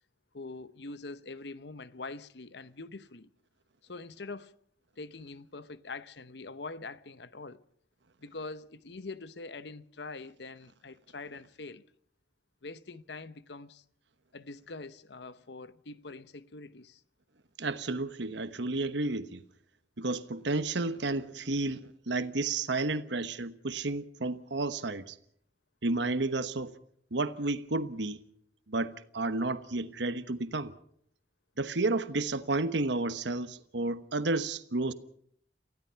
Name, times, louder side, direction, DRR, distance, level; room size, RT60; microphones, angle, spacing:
voice 1, 0.3-3.3 3.8-4.6 5.0-7.6 8.2-11.8 12.6-13.8 14.3-17.0, left 3 dB, 65° left, 0.9 m, -44 dB
voice 2, 17.6-19.4 20.0-25.2 25.8-26.7 27.1-28.2 28.7-30.7 31.6-34.9, right 2 dB, 70° right, 1.1 m, -31 dB
28.5 x 16.0 x 5.7 m
head